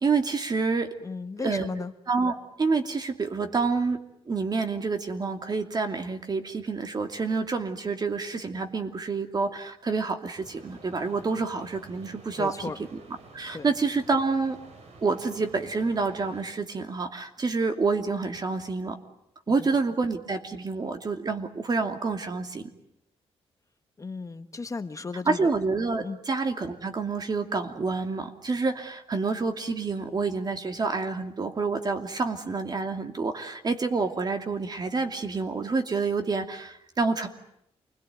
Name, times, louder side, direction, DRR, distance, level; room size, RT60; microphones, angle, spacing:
voice 1, 0.0-0.9 1.4-1.7 2.1-2.3 2.6-4.0 4.3-12.5 13.3-14.6 15.0-19.0 19.5-22.6 25.3-37.3, right 4 dB, 40° right, 6 dB, 2.8 m, -28 dB
voice 2, 1.0-1.9 12.4-12.8 13.5-13.7 19.5-19.7 24.0-25.5 26.0-26.2, left 4 dB, 30° left, 9 dB, 1.3 m, -35 dB
sound 1, 10.3-16.4, right 3 dB, 80° right, 5.3 m, -50 dB
28.5 x 21.5 x 9.4 m, 0.78 s
wide cardioid pair, 120°, 11 cm